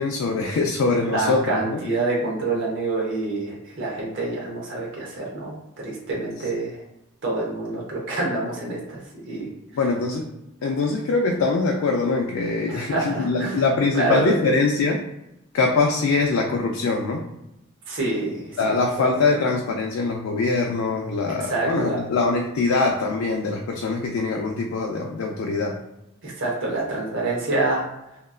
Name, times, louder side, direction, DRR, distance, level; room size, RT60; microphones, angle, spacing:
voice 1, 0.0-1.8 9.7-10.2 10.6-15.0 15.5-17.2 18.6-25.8, left 3 dB, 85° left, 1 dB, 0.4 m, -23 dB
voice 2, 1.0-6.8 7.2-9.0 9.3-9.5 12.7-13.6 13.9-14.5 17.9-18.6 19.0-19.4 21.4-22.0 26.2-27.8, right 2 dB, 60° right, -3 dB, 0.7 m, -27 dB
2.9 x 2.4 x 2.3 m, 0.87 s
head